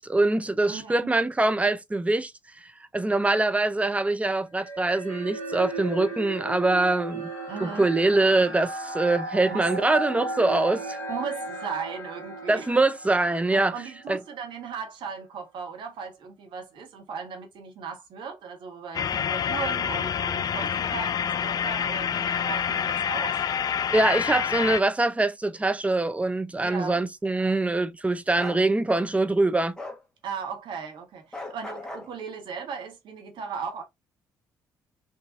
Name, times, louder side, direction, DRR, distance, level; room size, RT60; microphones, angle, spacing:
voice 1, 0.0-2.3 2.9-7.3 7.6-11.0 12.5-13.7 14.1-14.2 23.9-29.8, right 2 dB, 15° right, 0.5 m, -23 dB
voice 2, 0.7-1.2 7.5-7.9 9.5-9.7 11.1-12.7 13.5-23.4 26.6-27.0 30.2-33.8, right 6 dB, 60° right, 1.2 m, -37 dB
sound 1, 4.6-14.1, right 2 dB, 85° right, 1.5 m, -36 dB
sound 2, 18.9-24.8, left 8 dB, 45° left, 0.4 m, -27 dB
Bark, 28.4-28.6 29.8-30.0 31.3-32.1, left 2 dB, 5° left, 1.2 m, -37 dB
3.8 x 2.6 x 2.5 m
hypercardioid pair, 50°, 9 cm